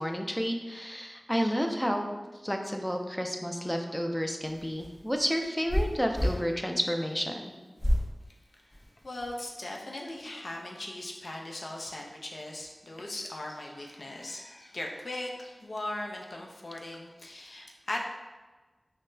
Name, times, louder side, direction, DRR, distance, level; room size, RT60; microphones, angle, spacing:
voice 1, 0.0-2.1 2.4-7.5, equal, 5° left, 3 dB, 0.4 m, -31 dB
sound 1, 4.5-6.4 7.8-8.1 8.7-9.3, equal, 30° left, 1.2 m, -29 dB
voice 2, 8.6-18.0, left 1 dB, 60° left, 0 dB, 0.5 m, -39 dB
5.5 x 2.1 x 2.6 m, 1.2 s
wide cardioid pair, 70°, 0 cm